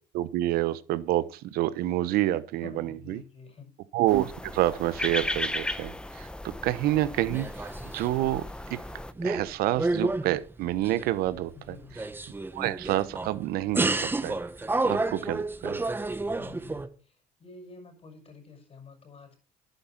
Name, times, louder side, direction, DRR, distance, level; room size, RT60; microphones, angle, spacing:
voice 1, 0.1-3.2 3.9-7.7 7.9-8.8 9.2-11.8 12.5-14.4 14.8-15.9, right 14 dB, 75° right, 1.1 m, -28 dB
voice 2, 2.6-3.7 11.5-12.0 16.4-19.4, left 4 dB, 40° left, 5.8 m, -49 dB
sound 1, 4.1-9.1, left 1 dB, 5° left, 0.9 m, -36 dB
sound 2, 7.3-8.4 8.7-9.5 9.8-11.4 11.8-13.4 13.7-16.9, right 2 dB, 15° right, 1.3 m, -30 dB
11.5 x 9.5 x 6.0 m
cardioid pair, 110°, 16 cm